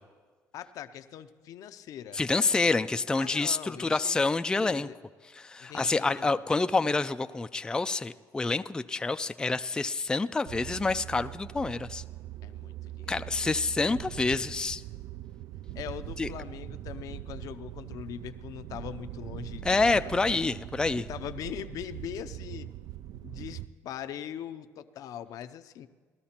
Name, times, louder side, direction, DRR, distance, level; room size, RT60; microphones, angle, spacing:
voice 1, 0.5-2.2 3.2-4.2 4.5-5.0 5.6-6.3 12.4-13.6 15.7-20.4 21.0-22.7 23.2-25.9, left 10 dB, 70° left, 11 dB, 0.5 m, -41 dB
voice 2, 2.1-4.9 5.3-12.0 13.1-14.8 16.2-16.3 19.6-21.0, left 3 dB, 10° left, 10 dB, 0.3 m, -27 dB
sound 1, 10.5-23.7, right 14 dB, 70° right, 0.3 m, -41 dB
18.5 x 13.0 x 2.9 m, 1.5 s
cardioid pair, 95°, 6 cm